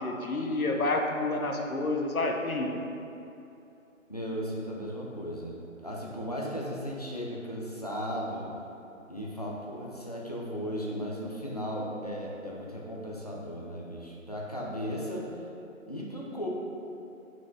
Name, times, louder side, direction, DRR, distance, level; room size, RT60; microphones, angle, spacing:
voice 1, 0.0-2.8, left 2 dB, 90° left, 2 dB, 1.0 m, -29 dB
voice 2, 4.1-8.5 9.1-15.3 15.9-16.5, equal, 30° left, -4 dB, 0.6 m, -36 dB
5.7 x 4.7 x 4.6 m, 2.8 s
figure-of-eight pair, 170°, 41 cm